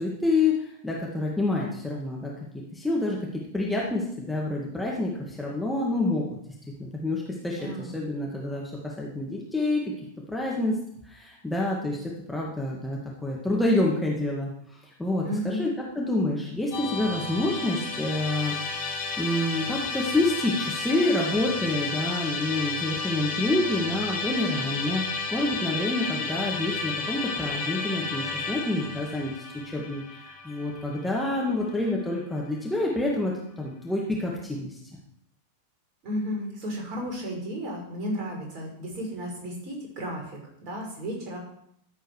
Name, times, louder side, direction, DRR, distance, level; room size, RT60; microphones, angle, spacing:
voice 1, 0.0-6.3 6.8-9.9 10.3-10.8 11.1-12.0 12.3-14.5 15.0-15.7 16.0-18.6 19.2-25.0 25.3-29.3 29.7-34.8, left 2 dB, 5° left, -4 dB, 2.2 m, -28 dB
voice 2, 7.5-8.0 15.2-15.8 36.0-41.4, equal, 40° right, 0 dB, 5.5 m, -33 dB
Musical instrument, 16.7-31.9, left 4 dB, 60° left, 5.5 m, -32 dB
14.0 x 8.2 x 4.9 m, 0.72 s
figure-of-eight pair, 90°, 0 cm